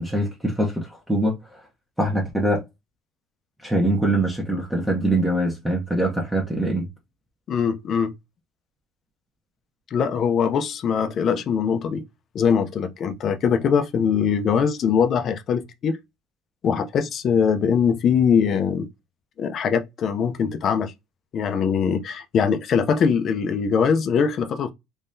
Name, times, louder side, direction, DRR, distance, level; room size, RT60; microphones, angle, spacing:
voice 1, 0.0-1.6 2.0-2.6 3.6-6.9, right 1 dB, 5° right, 0.9 m, -23 dB
voice 2, 7.5-8.1 9.9-12.0 12.3-16.0 16.6-18.9 19.4-20.9 21.3-24.7, left 6 dB, 40° left, 0.5 m, -22 dB
3.6 x 3.2 x 2.6 m
cardioid pair, 150°, 0 cm